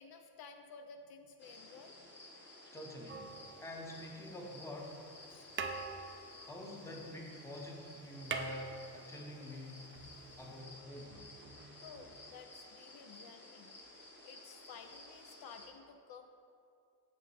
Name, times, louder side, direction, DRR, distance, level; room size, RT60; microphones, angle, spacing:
voice 1, 0.0-2.2 5.3-5.5 11.8-13.8 14.2-16.3, left 5 dB, 65° left, 6 dB, 0.5 m, -54 dB
sound 1, 1.4-15.7, left 2 dB, 25° left, 1.0 m, -55 dB
voice 2, 2.7-5.0 6.4-9.8 10.4-11.3, left 1 dB, 5° left, 0 dB, 0.7 m, -47 dB
sound 2, 3.1-4.2 5.1-5.3 5.5-7.4 7.7-7.8 8.0-9.4 10.6-10.7, right 5 dB, 30° right, 0.4 m, -43 dB
sound 3, 9.9-12.6, right 4 dB, 65° right, 0.8 m, -60 dB
9.4 x 6.3 x 3.3 m, 2.5 s
cardioid pair, 170°, 40 cm